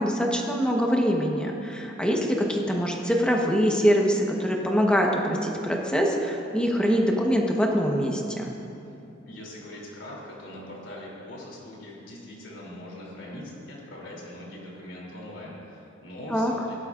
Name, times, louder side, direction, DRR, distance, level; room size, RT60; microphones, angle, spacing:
voice 1, 0.0-8.5 16.3-16.5, equal, 5° left, 0 dB, 1.1 m, -24 dB
voice 2, 9.3-16.6, left 1 dB, 85° left, -4 dB, 3.1 m, -41 dB
16.5 x 12.0 x 2.5 m, 2.6 s
head